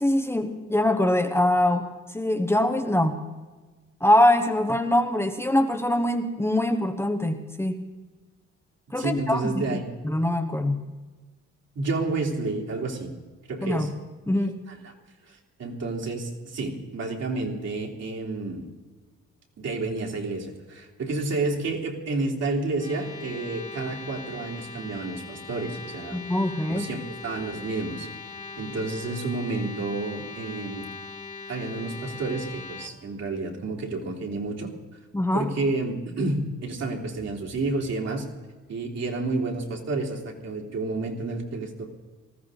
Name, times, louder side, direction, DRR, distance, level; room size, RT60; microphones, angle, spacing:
voice 1, 0.0-3.2 4.0-7.8 8.9-10.8 13.6-13.9 14.3-14.6 26.1-26.9 35.1-35.5, left 1 dB, 10° left, 4 dB, 1.1 m, -23 dB
voice 2, 8.9-10.0 11.8-13.1 13.5-13.9 14.7-14.9 15.3-18.7 19.6-26.2 26.7-28.1 28.6-30.9 31.5-34.7 35.3-38.3 38.7-41.9, right 3 dB, 60° right, -2 dB, 3.6 m, -30 dB
sound 1, 22.7-32.9, left 4 dB, 25° left, 2.1 m, -40 dB
19.5 x 14.5 x 4.0 m, 1.3 s
cardioid pair, 90°, 30 cm